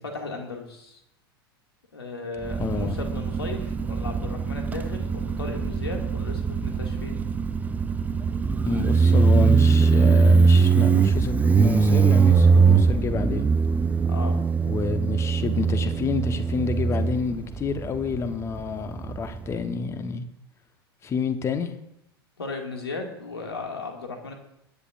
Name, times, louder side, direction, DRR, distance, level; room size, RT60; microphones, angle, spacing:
voice 1, 0.1-1.0 1.9-7.2 14.0-14.4 22.4-24.3, left 3 dB, 75° left, 2 dB, 2.2 m, -36 dB
Motorcycle, 2.4-19.6, right 5 dB, 10° right, 0.5 m, -21 dB
voice 2, 2.6-3.0 8.6-13.5 14.6-20.3 21.0-21.7, left 5 dB, 20° left, 10 dB, 1.1 m, -28 dB
22.0 x 10.0 x 2.5 m, 0.78 s
figure-of-eight pair, 90°, 13 cm